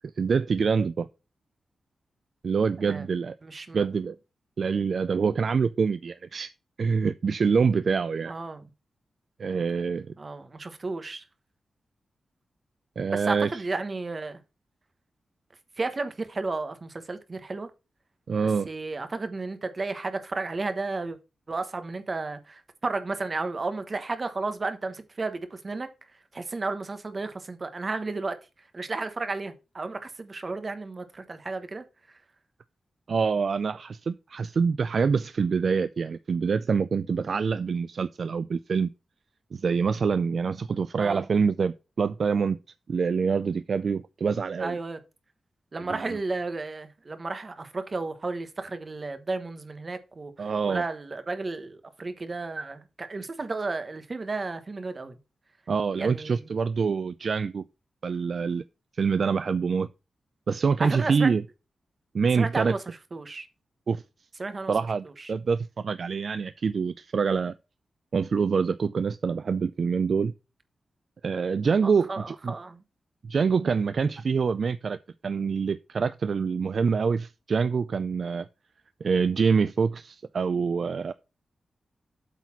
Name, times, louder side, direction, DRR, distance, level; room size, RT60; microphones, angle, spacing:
voice 1, 0.2-1.1 2.4-3.3 3.7-4.2 4.6-6.5 6.8-8.3 9.4-10.1 13.0-13.6 18.3-18.7 33.1-38.9 39.5-42.6 42.9-44.8 45.9-46.1 50.4-50.8 55.7-57.6 58.0-58.6 58.9-59.9 60.5-61.4 62.1-62.7 63.9-64.0 64.7-67.5 68.1-70.3 71.2-72.5 73.2-75.0 75.2-78.5 79.0-81.1, right 5 dB, 55° right, 0.4 m, -25 dB
voice 2, 3.4-3.8 8.3-8.7 10.2-11.2 13.1-14.4 15.8-17.7 18.7-21.2 21.5-25.9 26.3-28.4 28.7-31.8 41.0-41.2 44.6-45.0 45.7-55.2 56.0-56.4 60.8-61.3 62.4-63.5 64.4-64.7 65.2-65.3 71.8-72.8, right 3 dB, 35° right, 1.2 m, -33 dB
8.3 x 4.1 x 5.9 m
wide cardioid pair, 120°, 0 cm